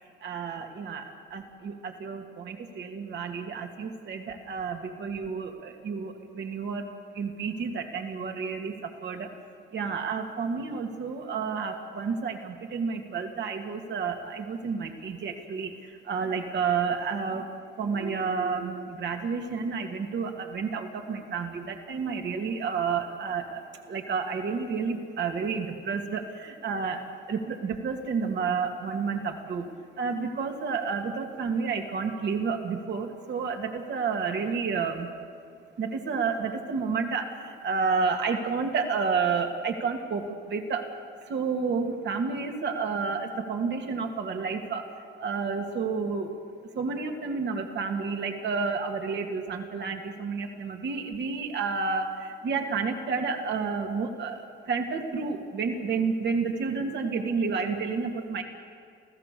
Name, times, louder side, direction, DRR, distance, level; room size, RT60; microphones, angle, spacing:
voice 1, 0.2-6.8 7.1-9.3 9.7-17.5 17.8-23.6 23.9-27.0 27.3-29.7 30.0-35.1 35.8-40.9 41.3-44.9 45.2-46.3 46.7-58.4, right 5 dB, 60° right, 3 dB, 2.4 m, -30 dB
28.5 x 16.0 x 6.9 m, 2.2 s
cardioid pair, 90°, 20 cm